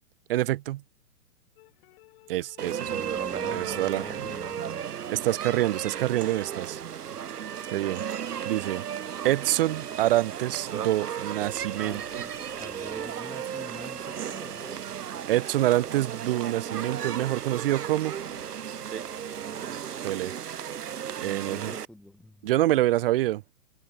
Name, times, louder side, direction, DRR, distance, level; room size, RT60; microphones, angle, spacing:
voice 1, 0.3-0.8 2.3-2.9 3.5-4.2 5.1-6.8 7.7-8.0 8.4-8.8 9.2-12.2 15.3-18.1 20.0-20.3 21.2-21.7 22.4-23.4, right 15 dB, 35° right, 1.0 m, -26 dB
sound 1, 1.6-7.2 9.7-15.6 18.3-19.5, left 21 dB, 40° left, 5.8 m, -57 dB
sound 2, 2.6-21.9, right 9 dB, 80° right, 1.4 m, -35 dB
voice 2, 2.8-4.9 11.8-14.9 19.3-19.8 21.2-22.5, left 1 dB, ahead, 6.4 m, -45 dB
hypercardioid pair, 140°, 46 cm